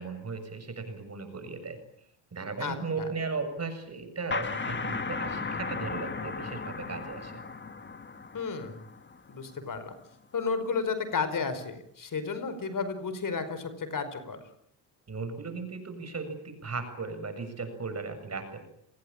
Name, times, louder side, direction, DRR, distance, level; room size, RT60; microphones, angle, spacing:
voice 1, 0.0-1.8 2.3-7.4 15.1-18.6, right 4 dB, 35° right, 8 dB, 7.5 m, -36 dB
sound 1, 4.3-9.7, left 4 dB, 25° left, 2.0 m, -36 dB
voice 2, 8.3-8.8 9.3-9.9 10.3-14.4, left 5 dB, 45° left, 11 dB, 5.1 m, -32 dB
30.0 x 20.5 x 8.9 m, 0.70 s
cardioid pair, 90°, 45 cm